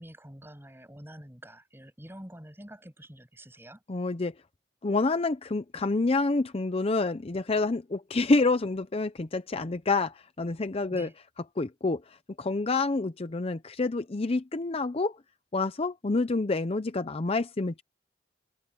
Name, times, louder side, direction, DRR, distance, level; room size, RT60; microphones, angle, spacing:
voice 1, 0.0-3.8 10.9-11.1, equal, 15° right, 8.0 m, -47 dB
voice 2, 3.9-4.3 4.8-11.1 11.6-15.2 15.5-17.8, left 3 dB, 35° left, 0.6 m, -28 dB
head